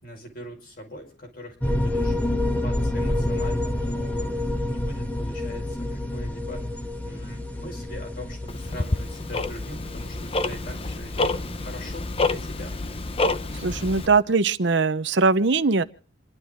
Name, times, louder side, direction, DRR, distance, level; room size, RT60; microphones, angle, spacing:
voice 1, 0.0-6.7 7.0-12.8, left 1 dB, 50° left, 5.3 m, -42 dB
sound 1, 1.6-14.2, left 1 dB, 10° left, 1.3 m, -29 dB
Tick-tock, 8.5-14.1, left 2 dB, 30° left, 0.7 m, -28 dB
voice 2, 13.6-15.8, right 4 dB, 65° right, 0.8 m, -21 dB
28.5 x 12.0 x 3.8 m
head